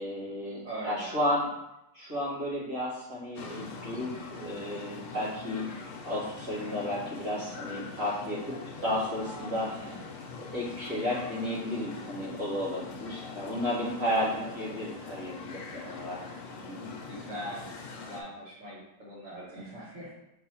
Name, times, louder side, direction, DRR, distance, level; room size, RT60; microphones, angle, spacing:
voice 1, 0.0-1.5 1.9-5.7 6.0-8.5 8.8-9.7 10.4-16.3 16.7-16.9, left 1 dB, 80° right, -8 dB, 2.3 m, -33 dB
voice 2, 0.6-1.2 6.5-7.0 9.7-10.2 14.1-14.9 16.8-20.1, right 1 dB, 55° right, -7 dB, 1.9 m, -42 dB
sound 1, 3.4-18.2, left 4 dB, 90° left, 1.1 m, -43 dB
4.6 x 3.4 x 3.0 m, 0.88 s
omnidirectional pair, 1.6 m